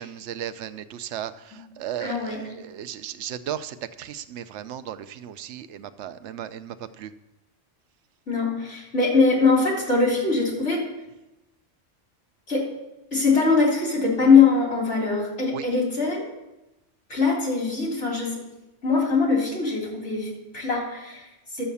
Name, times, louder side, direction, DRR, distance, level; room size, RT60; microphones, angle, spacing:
voice 1, 0.0-7.1 15.5-15.6, right 10 dB, 75° right, 11 dB, 0.9 m, -35 dB
voice 2, 2.0-2.4 8.3-10.9 12.5-12.7 13.1-16.3 17.1-18.4 18.8-21.7, left 4 dB, 70° left, -2 dB, 3.5 m, -22 dB
11.5 x 7.3 x 7.0 m, 0.98 s
omnidirectional pair, 1.2 m